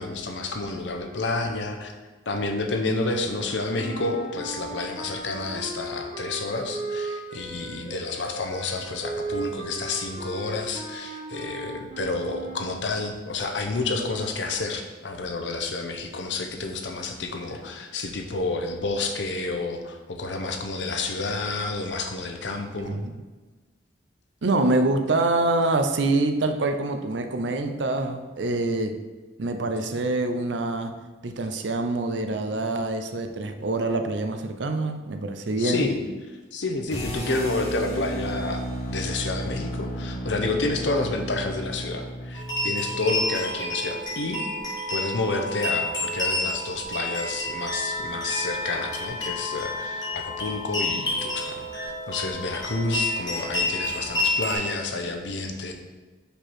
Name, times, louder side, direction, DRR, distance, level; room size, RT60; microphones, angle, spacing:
voice 1, 0.0-1.9 2.3-23.0 35.6-36.0 36.5-38.6 38.9-44.4 44.9-55.7, left 3 dB, 85° left, 4 dB, 0.8 m, -29 dB
sound 1, 3.7-12.9, right 2 dB, 40° right, 1.6 m, -36 dB
voice 2, 24.4-29.0 29.4-30.9 31.2-35.9, right 2 dB, 80° right, 7 dB, 0.6 m, -25 dB
sound 2, 36.9-43.0, right 1 dB, 40° left, 1.6 m, -33 dB
sound 3, 42.3-54.5, left 2 dB, 20° left, 1.3 m, -29 dB
5.2 x 4.5 x 4.3 m, 1.3 s
head